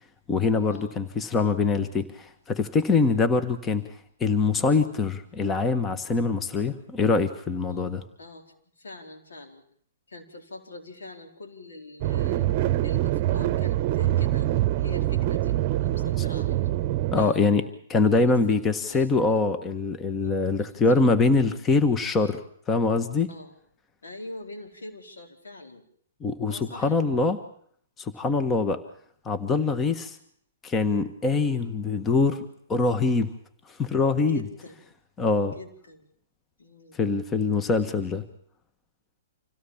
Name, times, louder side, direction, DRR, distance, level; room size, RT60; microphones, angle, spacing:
voice 1, 0.3-3.9 4.2-8.0 17.1-17.6 17.9-22.4 22.7-23.3 26.2-27.4 28.0-28.8 29.2-30.2 30.6-33.3 33.7-34.4 35.2-35.5 36.9-38.2, left 4 dB, 20° left, 10 dB, 1.5 m, -24 dB
voice 2, 8.2-9.6 10.1-12.5 12.8-16.7 17.2-17.5 18.2-19.3 20.2-21.1 23.3-23.6 24.0-25.8 26.5-26.9 34.3-34.8 35.5-36.1 36.6-37.0, left 2 dB, 80° left, 3 dB, 4.5 m, -44 dB
sound 1, 12.0-17.3, right 14 dB, 40° right, 0.9 m, -25 dB
26.5 x 17.0 x 7.3 m, 0.63 s
hypercardioid pair, 130°, 0 cm